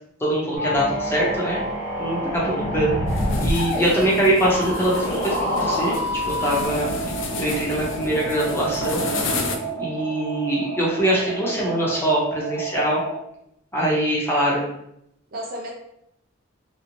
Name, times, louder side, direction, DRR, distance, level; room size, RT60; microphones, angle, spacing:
voice 1, 0.2-1.7 2.0-3.0 3.4-5.9 6.4-6.9 7.4-9.0 9.8-13.0 13.7-14.6, right 1 dB, 10° left, -5 dB, 0.7 m, -23 dB
sound 1, 0.6-6.6, left 1 dB, 10° right, 1.0 m, -26 dB
sound 2, 3.1-9.6, left 3 dB, 65° left, 0.4 m, -31 dB
voice 2, 3.7-4.2 15.3-15.7, left 1 dB, 50° right, 0 dB, 0.4 m, -31 dB
sound 3, 6.6-13.2, right 4 dB, 85° left, 0.7 m, -32 dB
2.6 x 2.0 x 2.9 m, 0.77 s
head